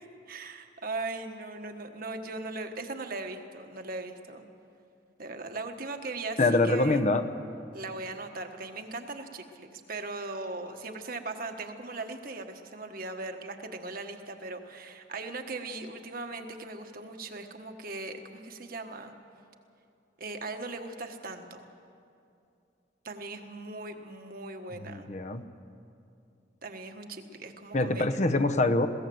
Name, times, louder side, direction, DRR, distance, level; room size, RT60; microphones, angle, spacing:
voice 1, 0.3-4.4 5.2-7.0 7.7-19.1 20.2-21.7 23.0-25.1 26.6-28.2, right 3 dB, 50° right, 5 dB, 1.4 m, -39 dB
voice 2, 6.4-7.2 24.9-25.4 27.7-28.9, left 2 dB, 40° left, 10 dB, 0.9 m, -24 dB
21.5 x 17.0 x 7.8 m, 2.6 s
head